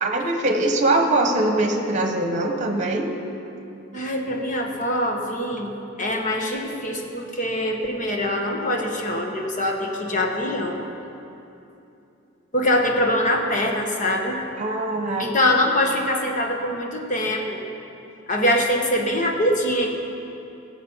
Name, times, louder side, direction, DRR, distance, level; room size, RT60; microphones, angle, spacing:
voice 1, 0.0-3.1 14.6-15.4, right 2 dB, 35° right, 4 dB, 1.2 m, -22 dB
voice 2, 3.9-5.7 6.0-10.8 12.5-14.4 15.2-17.6 18.3-19.9, left 1 dB, 40° left, 1 dB, 1.3 m, -23 dB
17.5 x 7.4 x 5.7 m, 2.8 s
head